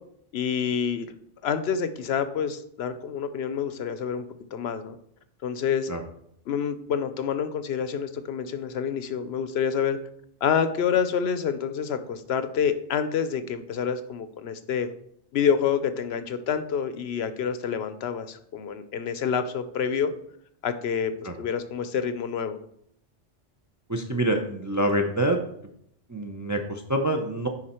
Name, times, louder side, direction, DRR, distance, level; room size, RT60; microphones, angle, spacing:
voice 1, 0.3-1.1 1.4-4.3 4.5-5.0 5.4-5.9 6.5-10.0 10.4-14.9 15.3-20.1 20.6-21.1 21.4-22.6, left 7 dB, 70° left, 11 dB, 0.8 m, -27 dB
voice 2, 23.9-25.4 26.1-27.5, right 1 dB, 25° right, 3 dB, 0.4 m, -26 dB
9.8 x 4.0 x 4.3 m, 0.70 s
omnidirectional pair, 1.2 m